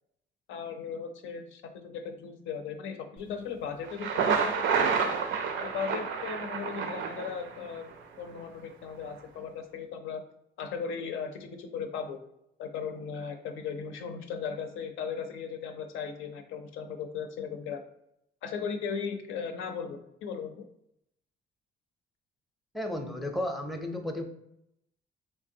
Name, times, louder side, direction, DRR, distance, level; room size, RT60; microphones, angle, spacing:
voice 1, 0.5-5.1 5.6-10.2 10.6-12.2 12.6-17.8 18.4-20.7, left 6 dB, 90° left, 6 dB, 0.5 m, -37 dB
Thunder, 3.8-7.8, right 6 dB, 75° right, 0.5 m, -29 dB
voice 2, 22.7-24.2, left 1 dB, ahead, 4 dB, 0.5 m, -33 dB
3.5 x 3.2 x 2.7 m, 0.80 s
cardioid pair, 90°, 20 cm